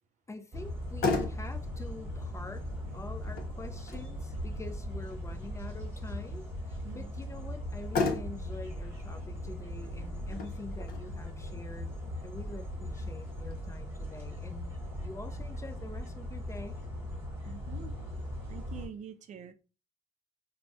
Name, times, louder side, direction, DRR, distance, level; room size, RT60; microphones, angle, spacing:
voice 1, 0.3-2.7 2.9-12.0 12.2-14.7 15.0-16.8, left 3 dB, 15° left, 0.4 m, -46 dB
sound 1, 0.5-18.9, left 1 dB, 15° right, 1.2 m, -39 dB
Motor vehicle (road), 0.6-13.6, left 3 dB, 65° left, 0.7 m, -39 dB
voice 2, 17.4-17.9 18.5-19.5, right 8 dB, 45° right, 0.4 m, -45 dB
2.5 x 2.1 x 3.4 m
cardioid pair, 110°, 17 cm